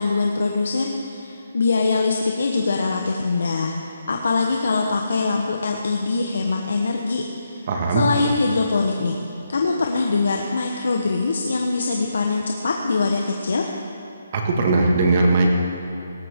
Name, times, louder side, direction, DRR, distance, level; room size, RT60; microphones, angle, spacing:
voice 1, 0.0-3.8 4.1-9.2 9.5-13.7, left 3 dB, 70° left, 1 dB, 1.1 m, -23 dB
voice 2, 7.7-8.0 14.3-15.5, right 3 dB, 35° right, 1 dB, 1.9 m, -18 dB
18.0 x 13.5 x 3.7 m, 2.9 s
hypercardioid pair, 170°, 0 cm